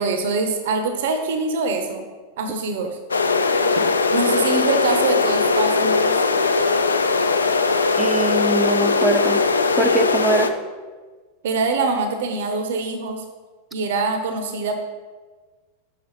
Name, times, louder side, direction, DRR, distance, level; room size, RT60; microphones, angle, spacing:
voice 1, 0.0-2.0 2.4-3.0 4.1-6.2 11.4-13.2 13.7-14.7, right 4 dB, 55° right, 6 dB, 0.6 m, -24 dB
sound 1, 3.1-10.5, left 4 dB, 75° left, 0.3 m, -19 dB
voice 2, 8.0-9.4 9.8-10.5, right 2 dB, 10° right, 8 dB, 0.4 m, -22 dB
5.7 x 5.6 x 3.2 m, 1.4 s
figure-of-eight pair, 90°, 0 cm